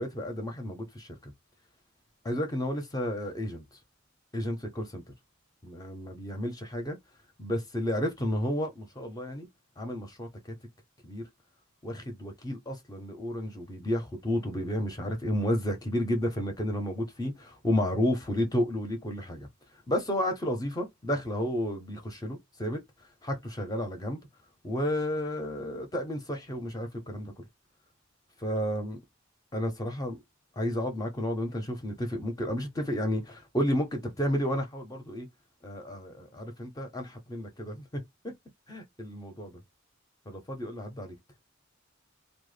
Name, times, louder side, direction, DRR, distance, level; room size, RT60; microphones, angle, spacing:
voice 1, 0.0-1.3 2.2-3.6 4.3-5.0 5.6-7.0 7.4-9.5 9.8-10.3 11.0-11.3 11.8-19.5 19.9-22.8 23.2-24.2 24.6-27.4 28.4-29.0 29.5-30.2 30.6-35.3 35.6-38.3 38.7-39.6 40.3-41.2, equal, 20° left, 0.5 m, -32 dB
2.1 x 2.0 x 3.2 m
head